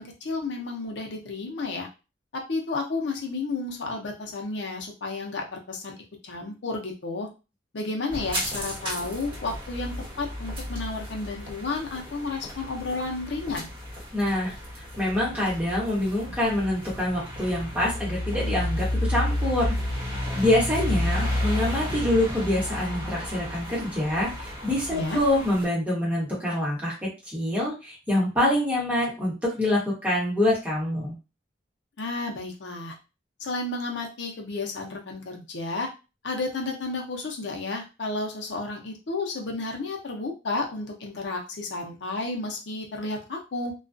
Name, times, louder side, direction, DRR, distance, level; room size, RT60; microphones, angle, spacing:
voice 1, 0.0-1.9 2.3-5.9 6.2-7.3 7.7-13.7 24.9-25.2 32.0-32.9 33.4-35.9 36.2-43.7, left 3 dB, 75° left, 1 dB, 0.7 m, -32 dB
sound 1, 8.1-25.6, left 1 dB, 30° right, 1.2 m, -32 dB
voice 2, 14.1-14.5 15.0-19.8 20.3-31.1, left 1 dB, 10° right, -6 dB, 1.1 m, -25 dB
2.3 x 2.3 x 2.5 m, 0.29 s
head